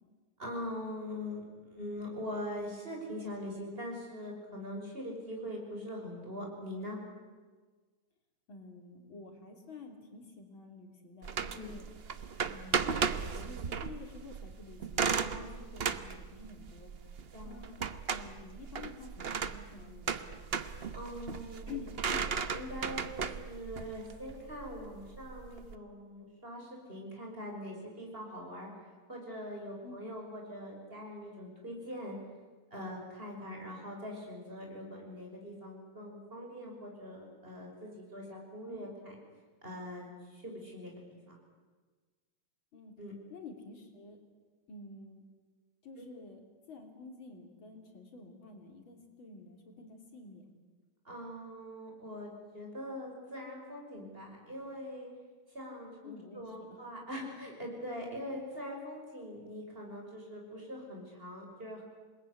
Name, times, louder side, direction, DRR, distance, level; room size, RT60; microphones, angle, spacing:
voice 1, 0.4-7.0 11.5-11.7 15.1-15.6 17.3-17.6 20.9-21.7 22.0-22.2 22.5-32.2 32.7-39.2 39.6-41.4 43.0-43.1 46.0-46.1 51.0-55.1 55.5-61.8, equal, 25° right, 0 dB, 6.3 m, -42 dB
voice 2, 8.5-11.9 12.5-13.0 13.3-16.9 17.4-17.8 18.1-20.5 21.7-22.1 29.8-30.1 38.7-38.9 42.7-42.9 43.3-44.2 44.7-45.2 45.8-46.4 46.7-50.4 56.0-56.8, left 4 dB, 75° left, 4 dB, 4.0 m, -50 dB
sound 1, 11.2-25.7, right 6 dB, 45° right, 0.8 m, -36 dB
27.5 x 20.5 x 9.9 m, 1.4 s
omnidirectional pair, 2.2 m